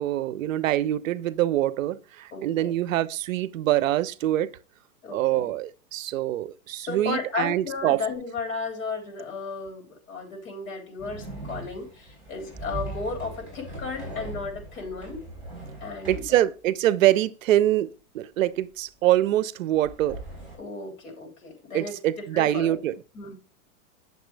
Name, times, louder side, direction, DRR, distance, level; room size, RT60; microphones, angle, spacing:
voice 1, 0.0-4.5 5.1-8.0 16.1-17.9 18.1-20.2 21.7-22.9, right 13 dB, 65° right, 0.6 m, -24 dB
voice 2, 2.3-2.7 5.0-5.5 6.8-15.2 15.8-16.3 20.6-22.8 23.1-23.3, left 4 dB, 65° left, 3.7 m, -34 dB
sound 1, 11.0-16.4 19.7-20.6, right 2 dB, 5° right, 4.7 m, -39 dB
9.2 x 6.7 x 3.2 m
supercardioid pair, 170°, 43 cm